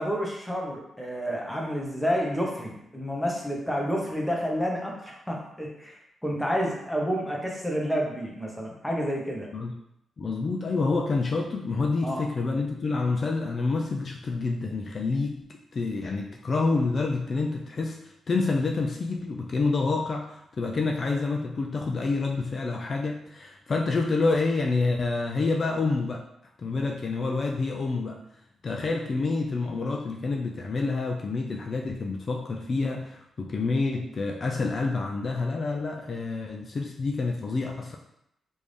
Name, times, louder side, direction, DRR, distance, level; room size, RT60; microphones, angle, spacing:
voice 1, 0.0-9.5 12.0-12.2, equal, ahead, -2 dB, 0.9 m, -29 dB
voice 2, 10.2-15.3 15.7-26.2 26.6-28.2 28.6-38.0, left 3 dB, 45° left, 1 dB, 0.3 m, -28 dB
3.5 x 2.6 x 3.2 m, 0.78 s
cardioid pair, 85°, 0 cm